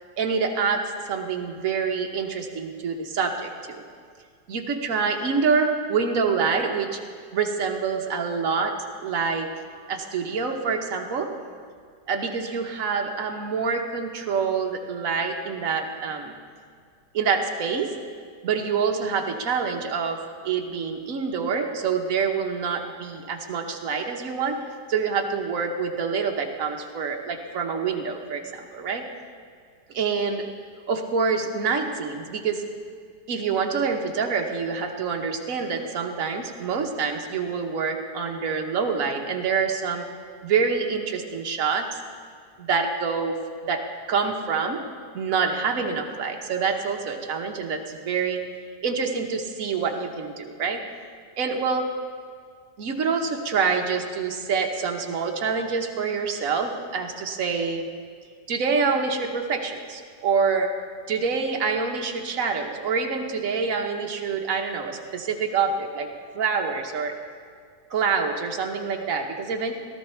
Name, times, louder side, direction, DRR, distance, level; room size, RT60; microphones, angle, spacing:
voice 1, 0.2-3.8 4.5-7.0 7.3-8.7 9.0-9.5 9.9-11.3 12.1-16.3 17.1-17.9 18.4-20.2 20.4-24.6 24.9-29.0 29.9-30.4 30.9-32.6 33.3-40.1 40.4-42.0 42.7-43.3 43.7-43.8 44.1-44.8 45.1-48.4 48.8-50.8 51.4-51.9 52.8-57.9 58.5-60.7 61.1-66.1 66.3-67.1 67.9-69.8, right 5 dB, 50° right, 3 dB, 1.4 m, -26 dB
18.0 x 13.0 x 4.4 m, 2.1 s
omnidirectional pair, 1.9 m